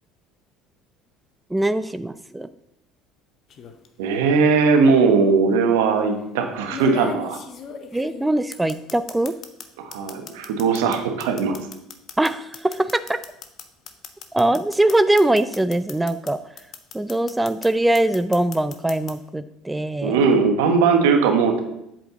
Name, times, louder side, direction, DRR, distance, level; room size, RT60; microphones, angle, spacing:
voice 1, 1.5-2.5 7.9-9.4 12.2-12.9 14.3-16.4 16.9-20.2, right 1 dB, 10° right, 12 dB, 0.4 m, -22 dB
sound 1, 3.5-3.9 5.1-5.2 6.7-9.7 9.9-16.3 16.6-17.7 17.9-19.1, left 6 dB, 45° left, 0.9 m, -37 dB
voice 2, 4.0-7.4 9.8-11.6 20.0-21.6, right 5 dB, 70° right, 5 dB, 1.2 m, -19 dB
7.9 x 7.5 x 3.8 m, 0.82 s
hypercardioid pair, 65°, 0 cm